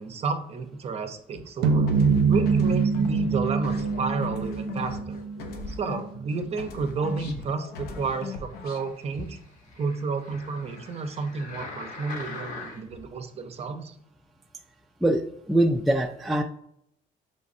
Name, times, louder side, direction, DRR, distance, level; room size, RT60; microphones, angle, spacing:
voice 1, 0.0-1.9 2.3-5.2 5.7-9.4 9.8-13.9, right 4 dB, 40° right, 8 dB, 0.6 m, -31 dB
sound 1, 1.6-6.0, right 5 dB, 80° right, 0.5 m, -24 dB
sound 2, 1.9-6.3 6.6-8.9, left 4 dB, 70° left, 0.7 m, -39 dB
sound 3, 8.4-13.0 13.6-13.7, left 3 dB, 50° left, 1.0 m, -42 dB
voice 2, 15.5-16.4, right 1 dB, ahead, 2 dB, 0.3 m, -22 dB
5.1 x 3.3 x 2.6 m, 0.74 s
cardioid pair, 110°, 17 cm